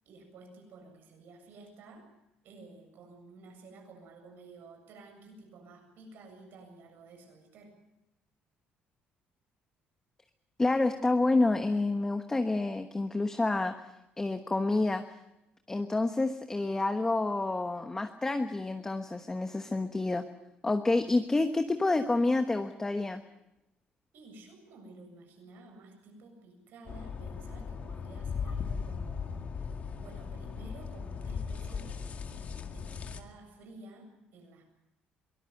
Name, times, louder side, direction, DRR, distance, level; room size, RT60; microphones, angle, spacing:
voice 1, 0.0-2.1 2.4-7.8 24.1-29.5 30.0-34.7, right 2 dB, 70° right, 4 dB, 7.6 m, -52 dB
voice 2, 10.6-13.7 14.2-15.0 15.7-20.2 20.6-23.2, left 2 dB, 15° left, 7 dB, 1.2 m, -28 dB
sound 1, 26.9-33.2, left 6 dB, 45° left, 2.0 m, -38 dB
23.0 x 19.0 x 7.8 m, 0.89 s
cardioid pair, 120°, 4 cm